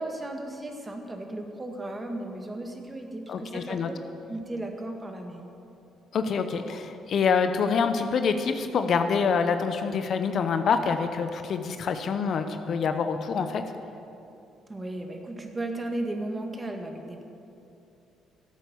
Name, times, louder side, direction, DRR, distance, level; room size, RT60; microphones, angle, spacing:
voice 1, 0.0-4.0 4.3-5.5 14.7-17.2, right 1 dB, 20° right, 3 dB, 1.8 m, -35 dB
voice 2, 3.3-3.9 6.1-13.6, left 5 dB, 60° left, 8 dB, 0.8 m, -26 dB
13.5 x 8.3 x 7.0 m, 2.8 s
supercardioid pair, 70°, 0 cm